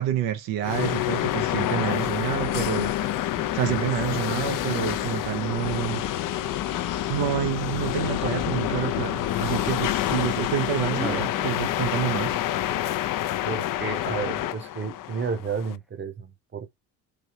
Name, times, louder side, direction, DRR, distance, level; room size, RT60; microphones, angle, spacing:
voice 1, 0.0-2.9 3.2-6.0 7.1-12.4, right 11 dB, 85° right, 0.7 m, -28 dB
sound 1, 0.6-15.8, left 13 dB, 50° left, 0.5 m, -27 dB
sound 2, 6.0-11.3, right 5 dB, 65° right, 1.5 m, -49 dB
voice 2, 13.4-16.8, right 5 dB, 30° right, 0.8 m, -32 dB
sound 3, 15.6-15.7, equal, ahead, 0.5 m, -45 dB
3.3 x 2.7 x 2.7 m
supercardioid pair, 70°, 41 cm